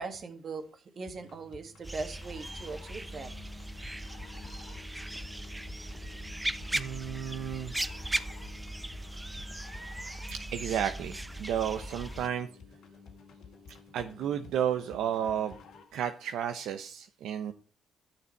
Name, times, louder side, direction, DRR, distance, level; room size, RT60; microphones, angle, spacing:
voice 1, 0.0-3.3, right 4 dB, 50° right, 2.0 m, -40 dB
sound 1, 1.1-16.0, left 5 dB, 75° left, 1.8 m, -51 dB
sound 2, 1.8-12.3, right 1 dB, 10° right, 0.8 m, -38 dB
voice 2, 6.7-7.7 10.3-12.5 13.7-15.6 15.9-17.5, right 9 dB, 80° right, 0.7 m, -32 dB
11.5 x 6.8 x 4.5 m
cardioid pair, 90°, 0 cm